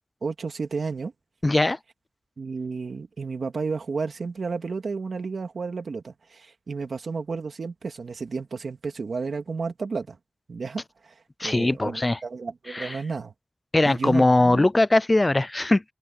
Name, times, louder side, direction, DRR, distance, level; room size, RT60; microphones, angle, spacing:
voice 1, 0.2-1.1 2.4-10.2 10.5-13.3 13.8-14.7, right 4 dB, 90° right, 2.5 m, -32 dB
voice 2, 1.4-1.8 11.4-12.2 12.7-13.0 13.7-15.8, left 2 dB, 30° left, 0.4 m, -20 dB
wide cardioid pair, 65°, 0 cm